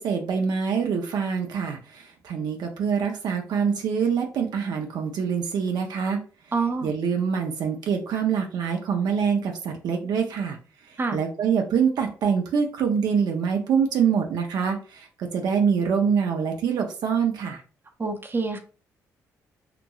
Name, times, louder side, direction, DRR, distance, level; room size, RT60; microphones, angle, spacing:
voice 1, 0.0-6.2 6.8-10.6 10.9-17.6, right 6 dB, 70° right, 3 dB, 0.5 m, -25 dB
voice 2, 6.5-6.9 11.0-11.2 18.0-18.6, right 4 dB, 30° right, 5 dB, 0.6 m, -26 dB
2.9 x 2.6 x 2.3 m, 0.36 s
supercardioid pair, 55°, 7 cm